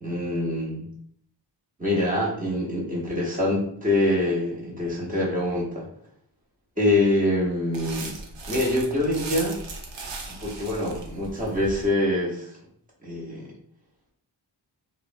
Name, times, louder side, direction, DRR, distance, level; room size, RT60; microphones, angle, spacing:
voice 1, 0.0-0.9 1.8-5.9 6.8-8.1 8.5-9.6 10.4-12.5 13.0-13.5, left 1 dB, 20° right, -5 dB, 0.9 m, -25 dB
sound 1, 7.7-11.9, right 3 dB, 70° right, 0.7 m, -37 dB
3.3 x 2.1 x 2.5 m, 0.66 s
wide cardioid pair, 135°, 45 cm